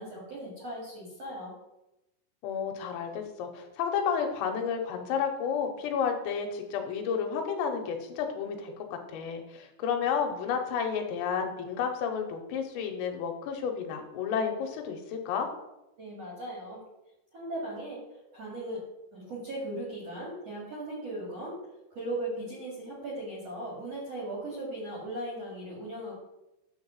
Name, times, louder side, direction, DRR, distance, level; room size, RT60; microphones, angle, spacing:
voice 1, 0.0-1.5 16.0-16.8 17.3-18.0 18.3-18.8 19.1-21.6 21.9-26.1, right 1 dB, 40° right, -5 dB, 2.5 m, -38 dB
voice 2, 2.4-15.5, left 7 dB, 85° left, 4 dB, 3.6 m, -31 dB
10.5 x 4.0 x 7.2 m, 0.93 s
omnidirectional pair, 5.9 m